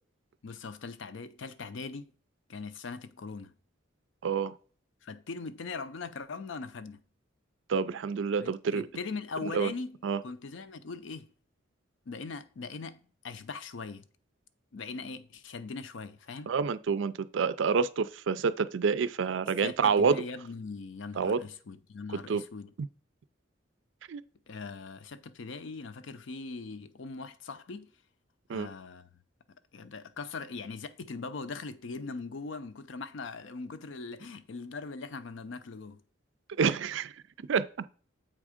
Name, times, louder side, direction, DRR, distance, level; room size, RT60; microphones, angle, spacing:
voice 1, 0.4-2.1 2.5-3.5 5.0-7.0 8.4-10.0 10.2-11.3 12.1-14.0 14.7-16.5 19.6-22.7 24.5-27.9 28.5-29.1 29.7-36.0, left 4 dB, 70° left, 0.5 m, -40 dB
voice 2, 4.2-4.5 7.7-8.9 9.5-9.7 10.0-10.2 16.5-20.2 21.2-21.4 22.3-22.4 24.1-24.2 28.5-28.7 36.6-37.1 37.5-37.7, right 5 dB, 70° right, 0.4 m, -28 dB
7.6 x 3.6 x 4.9 m
head